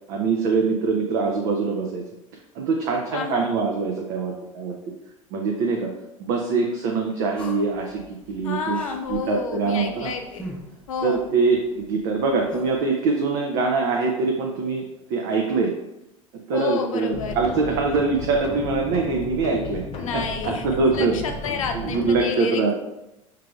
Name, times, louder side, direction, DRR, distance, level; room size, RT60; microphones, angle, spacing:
voice 1, 0.1-2.0 2.5-4.8 5.3-5.9 6.2-8.8 9.1-10.1 11.0-14.8 15.1-15.7 16.5-19.8 20.1-21.1 21.7-22.7, right 4 dB, 55° right, 1 dB, 0.6 m, -23 dB
voice 2, 3.1-3.5 8.4-10.4 10.9-11.2 16.5-17.4 20.0-22.7, left 5 dB, 80° left, 5 dB, 0.6 m, -30 dB
sound 1, 7.4-12.8, equal, 5° left, 0.8 m, -43 dB
sound 2, 17.1-22.2, left 3 dB, 40° left, 0.6 m, -34 dB
4.7 x 3.3 x 2.3 m, 0.93 s
hypercardioid pair, 75°, 17 cm